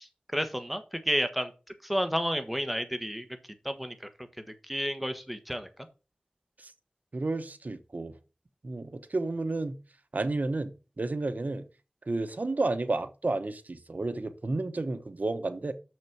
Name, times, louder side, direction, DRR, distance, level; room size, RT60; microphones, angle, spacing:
voice 1, 0.0-1.5 1.8-3.3 3.6-4.1 4.6-5.9, equal, ahead, 1.5 m, -31 dB
voice 2, 7.1-8.2 8.6-9.8 10.1-11.7 12.1-15.7, right 2 dB, 70° right, 1.0 m, -31 dB
6.4 x 6.3 x 5.9 m
wide cardioid pair, 45°, 3 cm